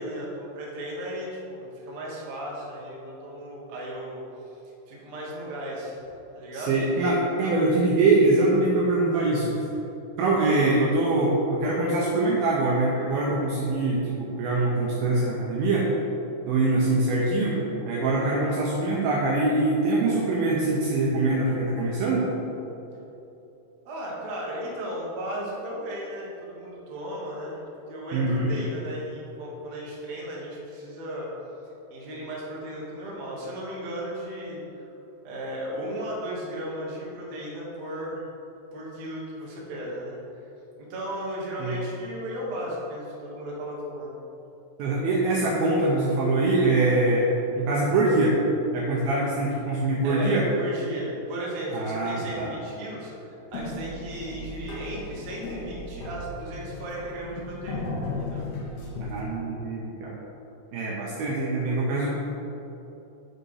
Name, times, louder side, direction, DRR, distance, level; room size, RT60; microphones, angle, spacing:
voice 1, 0.0-4.2 4.9-6.0 6.3-6.8 23.8-27.6 27.9-31.3 31.9-34.9 35.2-38.2 38.7-40.4 40.8-44.2 50.0-57.9 58.2-58.5, right 1 dB, 60° right, -4 dB, 1.9 m, -35 dB
voice 2, 6.5-9.5 10.2-15.9 16.5-22.3 28.1-28.5 41.6-41.8 44.8-47.3 47.6-48.4 48.7-50.5 51.7-52.5 59.0-60.2 60.7-62.1, right 2 dB, 75° right, -4 dB, 2.3 m, -23 dB
sound 1, 53.5-59.2, left 2 dB, 70° left, 2.7 m, -35 dB
7.6 x 5.0 x 4.8 m, 3.0 s
omnidirectional pair, 4.9 m